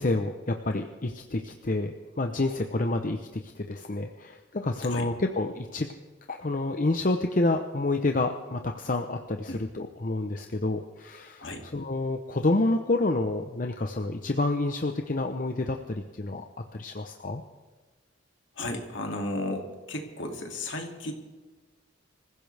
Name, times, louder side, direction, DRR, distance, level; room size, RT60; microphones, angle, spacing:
voice 1, 0.0-5.9 6.3-11.4 11.7-16.5 16.7-17.4, left 2 dB, 40° left, 5 dB, 0.8 m, -28 dB
voice 2, 18.5-21.1, left 1 dB, 65° left, 2 dB, 2.6 m, -34 dB
26.0 x 15.5 x 3.5 m, 1.2 s
head